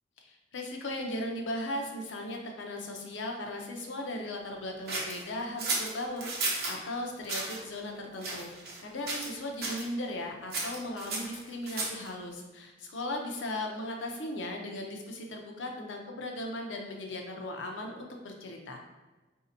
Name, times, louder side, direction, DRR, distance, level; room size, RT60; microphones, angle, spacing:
voice 1, 0.2-6.3 6.7-8.5 8.8-18.8, left 1 dB, 85° left, 2 dB, 0.6 m, -37 dB
sound 1, 4.9-6.8 7.2-7.6 8.2-8.8 9.1-9.3 9.6-9.9 10.5-12.1, right 3 dB, 55° right, 0.8 m, -33 dB
4.1 x 2.7 x 2.6 m, 1.2 s
head